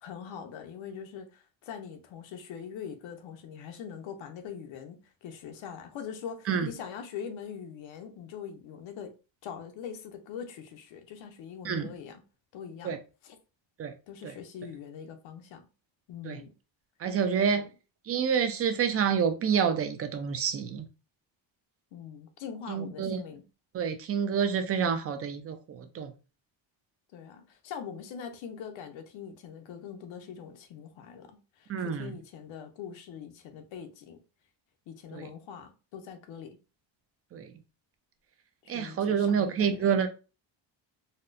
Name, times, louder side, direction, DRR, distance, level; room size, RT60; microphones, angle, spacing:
voice 1, 0.0-9.1 9.4-12.2 12.5-12.9 13.2-13.4 14.1-15.6 16.1-16.5 17.5-17.7 21.9-23.4 27.1-34.2 34.9-36.6 38.6-39.9, left 7 dB, 75° left, 0.7 m, -43 dB
voice 2, 17.0-17.7 18.1-20.9 22.7-23.2 23.7-26.1 31.7-32.1 35.1-35.3 37.3-37.5 38.7-40.1, right 7 dB, 35° right, 0.4 m, -28 dB
4.2 x 2.1 x 2.5 m
cardioid pair, 160°, 47 cm